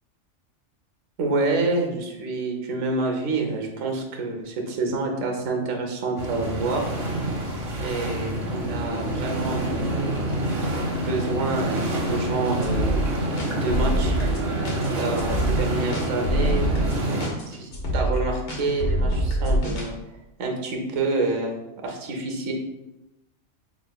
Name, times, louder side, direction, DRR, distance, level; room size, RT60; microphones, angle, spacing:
voice 1, 1.2-6.8 7.8-10.1 11.0-12.9 13.6-14.2 14.9-16.7 17.5-19.9 20.4-21.5 21.8-22.5, right 3 dB, 75° right, 2 dB, 1.2 m, -27 dB
sound 1, 6.2-17.3, right 1 dB, 55° right, 1.0 m, -27 dB
sound 2, 12.6-19.9, right 1 dB, 90° left, 1.3 m, -25 dB
4.2 x 3.8 x 2.2 m, 0.95 s
omnidirectional pair, 1.4 m